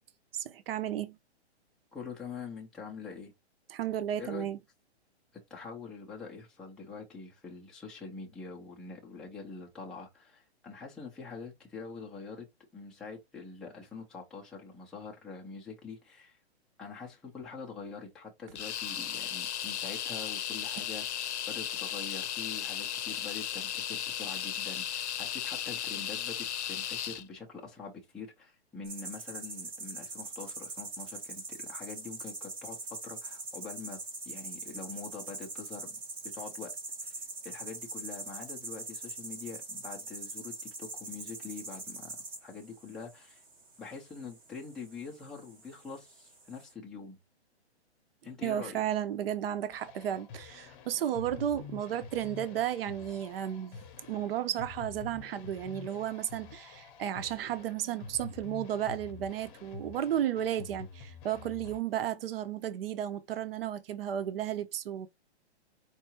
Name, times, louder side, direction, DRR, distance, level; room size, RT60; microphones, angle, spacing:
voice 1, 0.3-1.2 3.7-4.6 48.4-53.8 54.1-65.1, right 10 dB, 55° right, 0.7 m, -33 dB
voice 2, 1.9-3.3 4.2-4.5 5.5-12.5 12.7-16.4 16.8-32.8 33.0-34.0 34.2-36.0 36.2-36.7 37.0-42.1 42.4-43.4 43.8-47.2 48.2-48.8, left 5 dB, ahead, 0.4 m, -44 dB
sound 1, 18.6-27.2, left 10 dB, 85° left, 0.7 m, -35 dB
sound 2, 28.8-46.7, right 3 dB, 15° right, 0.8 m, -43 dB
sound 3, 49.7-61.8, left 6 dB, 20° left, 0.8 m, -48 dB
4.7 x 2.6 x 4.3 m
hypercardioid pair, 155°, 33 cm